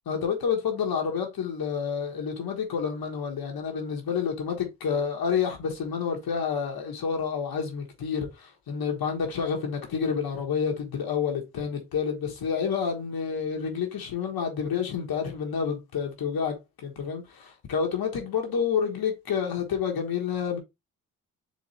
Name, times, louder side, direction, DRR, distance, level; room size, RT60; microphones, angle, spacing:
voice 1, 0.0-20.6, left 6 dB, 70° left, 1.5 m, -29 dB
4.4 x 3.4 x 3.2 m
supercardioid pair, 55°, 37 cm